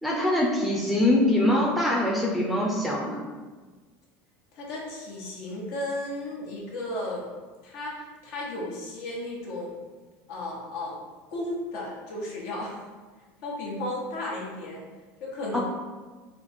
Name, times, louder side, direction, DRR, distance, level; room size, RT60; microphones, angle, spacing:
voice 1, 0.0-3.3 15.5-15.6, left 1 dB, ahead, -3 dB, 0.5 m, -23 dB
voice 2, 4.5-7.3 7.6-9.7 10.3-11.0 11.3-12.9 13.4-14.8 15.2-15.6, left 1 dB, 70° left, -3 dB, 1.2 m, -34 dB
4.4 x 2.4 x 4.2 m, 1.3 s
cardioid pair, 150°, 6 cm